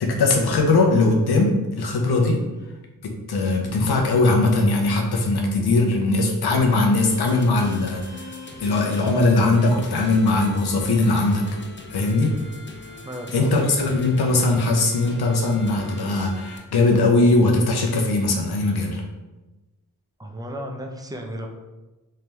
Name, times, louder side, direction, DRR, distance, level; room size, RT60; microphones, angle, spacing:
voice 1, 0.0-2.4 3.0-11.4 11.9-12.3 13.3-19.0, left 2 dB, 85° left, 1 dB, 0.7 m, -20 dB
sound 1, 7.0-16.6, left 2 dB, 30° left, 0.7 m, -41 dB
voice 2, 13.0-13.5 20.2-21.5, equal, 10° right, 2 dB, 0.6 m, -34 dB
3.3 x 2.8 x 3.4 m, 1.1 s
cardioid pair, 50°, 38 cm